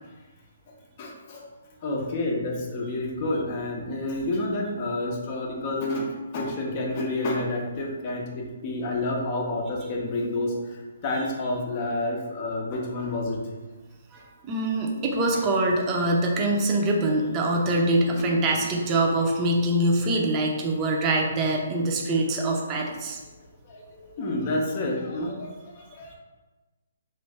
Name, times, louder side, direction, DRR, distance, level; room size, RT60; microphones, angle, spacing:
voice 1, 1.0-1.4 1.8-6.1 6.3-13.4 23.7-26.2, left 2 dB, 35° left, 0 dB, 0.7 m, -29 dB
voice 2, 14.1-23.2, right 1 dB, 25° right, 0 dB, 0.6 m, -24 dB
3.1 x 2.6 x 3.2 m, 1.2 s
figure-of-eight pair, 135°, 0 cm